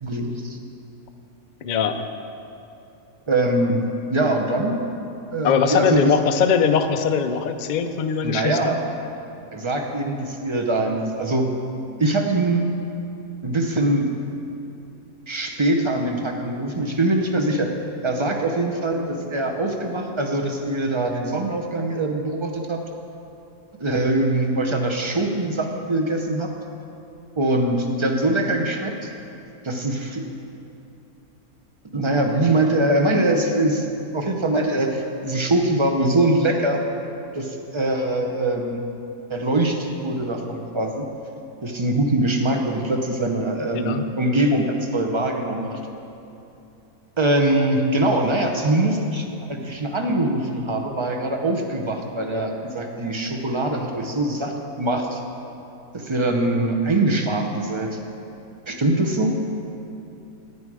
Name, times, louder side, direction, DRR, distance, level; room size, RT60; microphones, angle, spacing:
voice 1, 0.0-0.6 3.3-3.8 4.1-4.8 5.3-6.1 8.2-8.8 9.5-11.5 12.0-12.6 13.4-14.1 15.3-17.7 18.0-22.8 23.8-26.5 27.4-29.1 29.6-30.3 31.9-33.9 34.1-36.8 37.3-38.8 39.3-41.1 41.6-45.8 47.2-55.2 55.9-58.0 58.7-59.4, right 2 dB, 30° right, 2 dB, 0.5 m, -23 dB
voice 2, 1.6-2.1 5.4-8.8 43.7-44.0, left 6 dB, 80° left, 7 dB, 0.4 m, -21 dB
9.9 x 9.7 x 4.8 m, 2.8 s
omnidirectional pair, 1.5 m